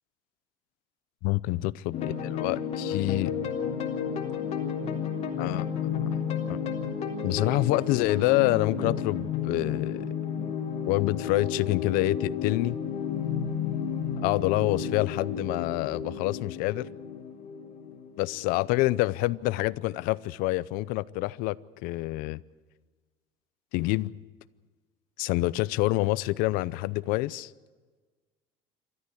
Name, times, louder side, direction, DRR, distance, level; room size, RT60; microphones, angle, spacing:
voice 1, 1.2-3.3 5.4-5.7 6.5-6.6 7.2-10.1 10.9-12.8 14.2-16.9 18.2-21.6 21.8-22.4 23.7-24.1 25.2-27.5, left 19 dB, 75° left, 0.6 m, -27 dB
sound 1, 1.9-18.8, left 7 dB, 45° left, 3.6 m, -32 dB
27.0 x 13.5 x 8.4 m
cardioid pair, 125°, 15 cm